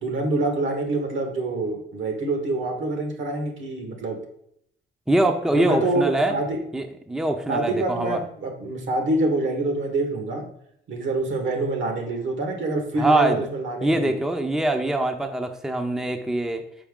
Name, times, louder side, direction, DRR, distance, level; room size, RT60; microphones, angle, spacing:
voice 1, 0.0-4.2 5.5-6.6 7.5-10.4 10.9-14.2, right 2 dB, 75° right, 4 dB, 1.6 m, -26 dB
voice 2, 5.1-6.4 6.7-8.2 13.0-13.5 13.8-16.6, right 1 dB, 5° right, 6 dB, 0.6 m, -23 dB
6.0 x 4.8 x 3.6 m, 0.71 s
cardioid pair, 90°, 20 cm